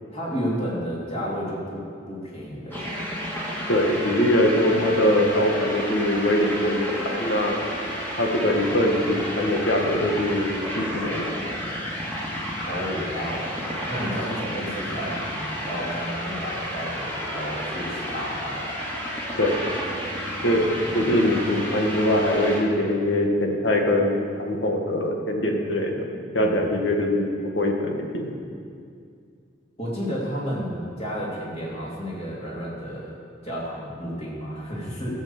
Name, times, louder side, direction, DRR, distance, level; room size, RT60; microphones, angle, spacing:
voice 1, 0.1-2.9 12.6-13.5 13.9-18.7 20.8-20.9 26.4-26.6 29.8-33.1 33.4-35.2, equal, 35° left, -5 dB, 3.2 m, -31 dB
sound 1, 2.7-22.6, equal, 10° left, 2.1 m, -31 dB
voice 2, 3.7-7.6 8.2-11.3 19.4-19.5 20.4-20.7 20.9-26.1 26.3-27.3 27.5-28.3, left 1 dB, 80° left, 1 dB, 1.8 m, -22 dB
14.5 x 7.4 x 7.3 m, 2.3 s
head